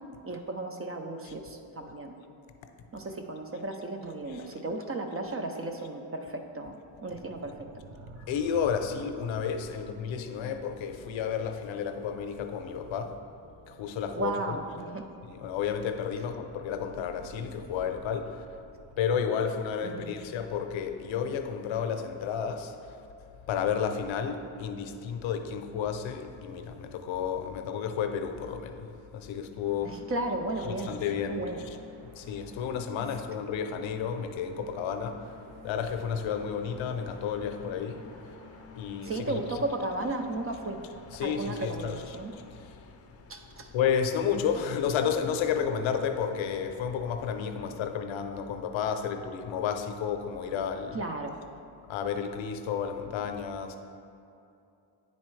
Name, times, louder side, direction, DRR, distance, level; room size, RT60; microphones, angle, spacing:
voice 1, 0.2-2.2 2.9-7.7 14.1-15.0 19.8-20.2 29.8-31.0 31.3-31.6 39.0-40.8 41.2-42.3 43.3-43.7 47.6-47.8 50.9-51.4, right 2 dB, 30° right, 4 dB, 0.5 m, -34 dB
sound 1, 7.1-19.6, right 2 dB, 90° right, 0.8 m, -53 dB
voice 2, 8.3-13.1 13.7-14.3 15.2-18.3 19.0-22.7 23.5-28.9 29.1-29.9 30.8-31.5 32.2-35.2 35.6-38.0 38.8-39.3 41.1-42.0 43.7-51.0 51.9-53.8, left 7 dB, 65° left, 7 dB, 0.6 m, -31 dB
sound 2, 29.5-38.8, equal, 60° right, 0.9 m, -52 dB
sound 3, 35.8-47.8, left 4 dB, 30° left, 0.5 m, -53 dB
9.5 x 4.1 x 3.2 m, 2.6 s
cardioid pair, 90°, 49 cm